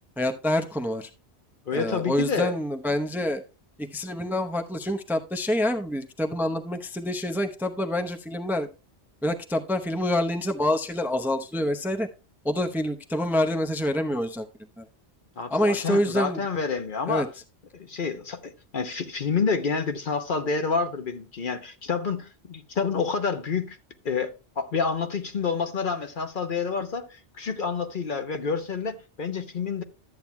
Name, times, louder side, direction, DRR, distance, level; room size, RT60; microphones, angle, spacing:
voice 1, 0.2-1.1 1.7-3.4 3.8-8.7 9.2-12.1 12.4-14.5 14.8-14.9 15.5-16.4 17.1-17.3, left 1 dB, ahead, 0.7 m, -27 dB
voice 2, 1.7-2.5 15.4-17.3 17.7-23.8 24.0-29.8, left 5 dB, 50° left, 1.0 m, -28 dB
13.0 x 8.9 x 2.2 m
omnidirectional pair, 1.1 m